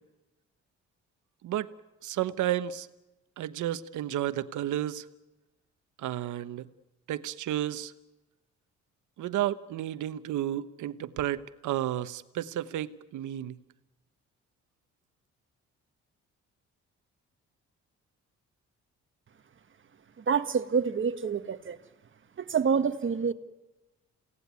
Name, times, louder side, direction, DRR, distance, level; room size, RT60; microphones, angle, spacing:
voice 1, 2.0-2.9 3.4-5.0 6.0-6.7 7.1-7.9 9.2-13.6, right 12 dB, 80° right, 1.1 m, -32 dB
voice 2, 20.2-21.8 22.4-23.3, right 6 dB, 40° right, 1.5 m, -27 dB
28.0 x 17.5 x 9.5 m
cardioid pair, 90°, 30 cm